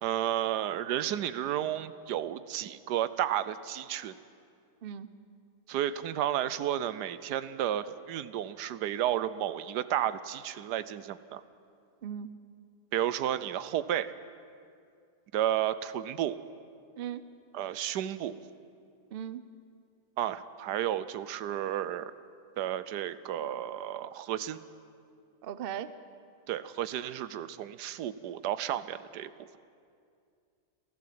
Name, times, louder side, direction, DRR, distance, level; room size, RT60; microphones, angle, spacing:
voice 1, 0.0-4.1 5.7-11.4 12.9-14.1 15.3-16.4 17.5-18.4 20.2-22.1 22.6-24.6 26.5-29.3, right 11 dB, 85° right, 15 dB, 1.3 m, -32 dB
voice 2, 4.8-5.1 12.0-12.3 17.0-17.2 19.1-19.4 25.4-25.9, right 9 dB, 50° right, 13 dB, 0.7 m, -38 dB
30.0 x 12.0 x 7.6 m, 2.3 s
omnidirectional pair, 1.8 m